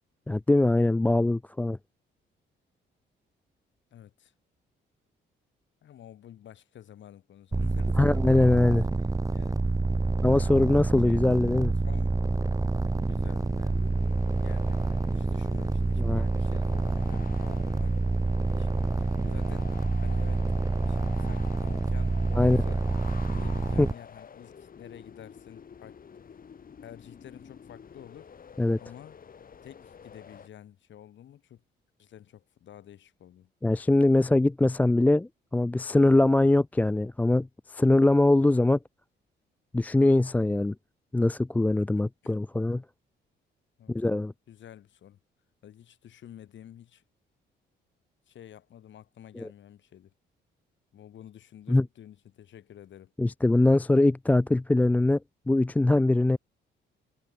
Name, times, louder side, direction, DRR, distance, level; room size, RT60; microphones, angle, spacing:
voice 1, 0.3-1.8 8.0-8.9 10.2-11.7 16.0-16.2 22.3-22.6 23.8-23.9 28.6-28.8 33.6-38.8 39.7-40.7 41.1-42.8 43.9-44.3 49.4-49.5 51.7-51.8 53.2-55.2 55.5-56.4, left 2 dB, 10° left, 0.3 m, -22 dB
voice 2, 3.9-4.3 5.8-8.7 9.3-9.7 11.0-11.4 11.8-12.2 13.0-14.0 14.4-14.8 15.1-18.0 18.3-19.8 20.0-20.5 20.9-22.9 23.3-26.0 26.8-28.3 28.8-29.2 29.6-31.6 32.0-33.5 36.0-36.4 42.2-42.3 43.8-44.1 44.5-45.2 45.6-47.0 48.3-50.1 50.9-53.1, left 10 dB, 70° left, 7.4 m, -50 dB
sound 1, 7.5-23.9, right 3 dB, 15° right, 1.0 m, -27 dB
sound 2, 12.1-30.5, left 7 dB, 45° left, 3.9 m, -49 dB
cardioid pair, 90°, 20 cm